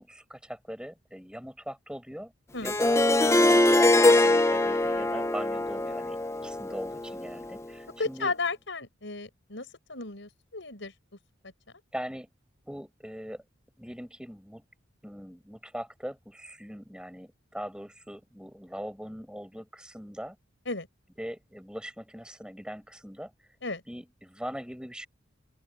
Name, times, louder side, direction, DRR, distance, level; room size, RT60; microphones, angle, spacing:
voice 1, 0.0-2.3 2.6-3.0 3.3-6.2 6.4-8.3 11.9-12.3 12.6-13.4 13.8-14.7 15.0-20.4 21.2-23.3 23.9-25.1, equal, 5° right, 7.0 m, -40 dB
Harp, 2.6-7.6, left 2 dB, 15° left, 0.8 m, -23 dB
voice 2, 8.0-10.9 11.4-11.5 20.7-20.9 23.6-23.8, left 3 dB, 65° left, 5.6 m, -34 dB
open air
head